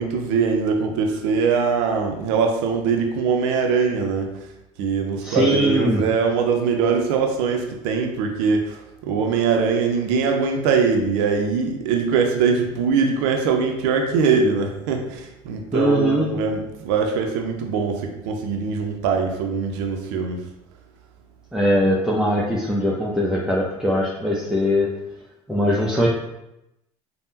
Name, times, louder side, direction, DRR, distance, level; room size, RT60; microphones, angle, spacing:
voice 1, 0.0-4.4 4.8-20.4, right 5 dB, 75° right, 3 dB, 0.5 m, -22 dB
voice 2, 5.2-6.0 15.7-16.3 21.5-24.9 25.5-26.1, equal, 5° right, -5 dB, 0.6 m, -20 dB
3.4 x 2.1 x 2.7 m, 0.90 s
hypercardioid pair, 70°, 16 cm